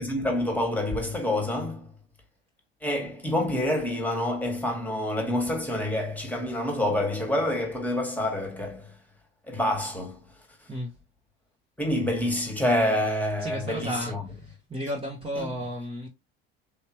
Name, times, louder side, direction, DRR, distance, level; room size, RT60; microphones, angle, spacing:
voice 1, 0.0-1.9 2.8-9.0 9.5-10.2 11.8-14.2 15.4-15.5, left 1 dB, 5° left, 1.4 m, -27 dB
voice 2, 13.4-16.1, equal, 20° right, 0.9 m, -33 dB
3.4 x 2.8 x 2.9 m
hypercardioid pair, 70°, 29 cm